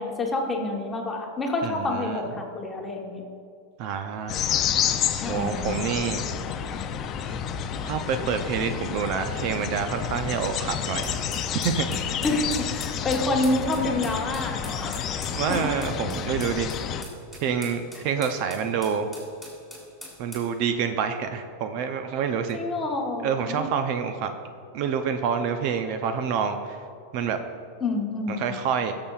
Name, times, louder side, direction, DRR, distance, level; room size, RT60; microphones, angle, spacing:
voice 1, 0.0-3.2 5.2-5.8 12.2-15.0 15.5-15.7 22.5-23.7 27.8-28.4, left 2 dB, 15° left, 1 dB, 1.1 m, -28 dB
voice 2, 1.6-2.2 3.8-4.5 5.3-6.5 7.2-7.4 7.8-11.1 11.6-12.2 15.3-16.7 17.4-19.1 20.2-22.6 23.2-24.3 24.7-26.8 27.1-27.4 28.3-28.9, right 7 dB, 50° right, 7 dB, 0.5 m, -27 dB
sound 1, 4.3-17.0, left 8 dB, 30° left, 0.4 m, -30 dB
sound 2, 11.0-20.5, left 1 dB, 5° right, 2.2 m, -44 dB
16.0 x 6.9 x 2.4 m, 2.4 s
supercardioid pair, 145°, 0 cm